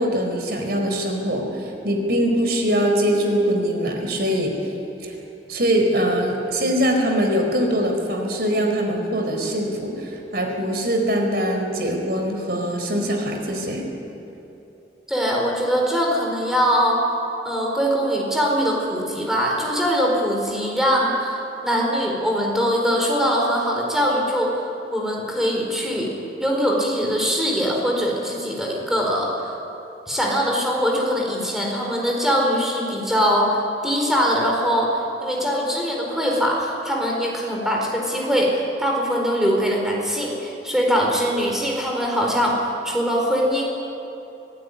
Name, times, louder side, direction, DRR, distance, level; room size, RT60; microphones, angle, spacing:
voice 1, 0.0-4.5 5.0-5.1 5.5-13.9, equal, 60° right, 3 dB, 4.6 m, -22 dB
voice 2, 15.1-17.0 17.4-26.1 26.4-29.5 30.1-42.6 42.8-43.7, equal, 5° right, -1 dB, 4.6 m, -22 dB
25.0 x 15.5 x 9.9 m, 2.9 s
head